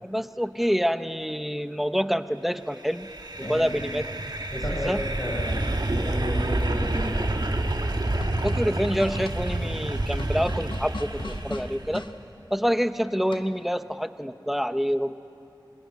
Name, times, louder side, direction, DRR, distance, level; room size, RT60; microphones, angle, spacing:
voice 1, 0.0-3.1 3.4-4.0 4.5-5.0 8.4-12.0 12.5-15.1, equal, ahead, 10 dB, 0.9 m, -27 dB
sound 1, 2.8-12.0, right 1 dB, 60° right, 1.6 m, -28 dB
voice 2, 4.5-5.7 5.9-7.3, left 1 dB, 35° left, -3 dB, 5.1 m, -32 dB
sound 2, 7.8-12.1 13.3-13.7, left 2 dB, 80° left, 1.3 m, -39 dB
26.0 x 21.0 x 9.4 m, 2.8 s
wide cardioid pair, 40°, 8 cm